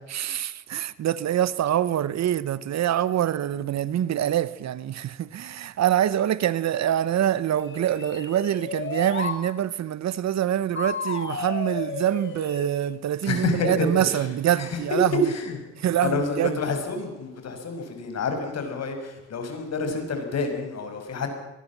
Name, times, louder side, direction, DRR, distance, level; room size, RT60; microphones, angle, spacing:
voice 1, 0.1-15.3 15.8-16.6, right 11 dB, 60° right, 1.0 m, -25 dB
sound 1, 7.6-9.4 10.8-12.8, left 4 dB, 40° left, 4.1 m, -33 dB
voice 2, 13.2-14.3 14.5-14.8 15.2-15.6 16.0-21.3, left 4 dB, 60° left, 6.0 m, -29 dB
23.5 x 20.0 x 7.5 m
cardioid pair, 90°, 30 cm